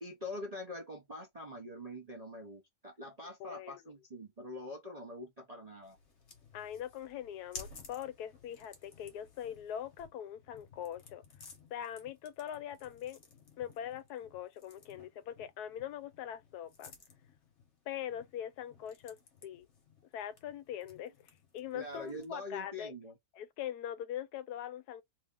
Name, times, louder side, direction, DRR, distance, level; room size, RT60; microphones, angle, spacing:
voice 1, 0.0-6.0 21.7-23.1, left 1 dB, 40° right, 0.5 m, -44 dB
voice 2, 3.4-3.8 6.5-11.2 11.7-13.2 13.6-16.9 17.9-19.2 19.4-19.7 20.1-22.9 23.4-25.0, left 10 dB, 75° left, 1.1 m, -42 dB
sound 1, 5.8-22.5, left 4 dB, 50° left, 1.2 m, -56 dB
3.1 x 2.6 x 3.6 m
omnidirectional pair, 1.7 m